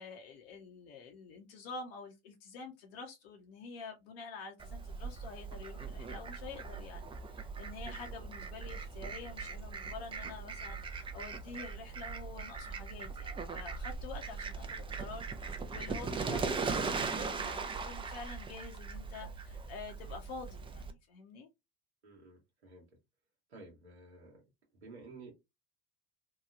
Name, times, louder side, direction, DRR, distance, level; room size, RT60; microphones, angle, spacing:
voice 1, 0.0-21.5, left 4 dB, 65° left, 0.8 m, -48 dB
Fowl, 4.6-20.9, right 4 dB, 15° right, 0.4 m, -40 dB
voice 2, 22.0-22.9 23.5-24.4 24.7-25.3, right 3 dB, 90° right, 1.0 m, -52 dB
2.9 x 2.3 x 2.3 m
hypercardioid pair, 70°, 32 cm